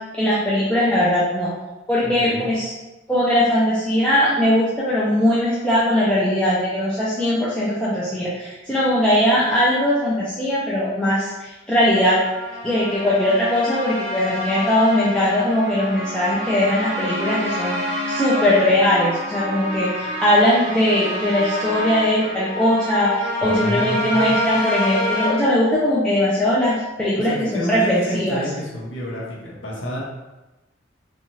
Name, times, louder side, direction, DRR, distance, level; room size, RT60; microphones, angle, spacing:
voice 1, 0.2-1.5 1.9-2.7 3.1-12.2 12.6-23.1 23.4-28.4, left 1 dB, 5° left, -9 dB, 0.4 m, -20 dB
voice 2, 2.1-2.5 23.4-24.3 27.2-30.0, equal, 70° left, -4 dB, 0.8 m, -29 dB
sound 1, 11.9-25.3, left 1 dB, 25° right, 0.9 m, -28 dB
2.6 x 2.3 x 3.0 m, 1.1 s
head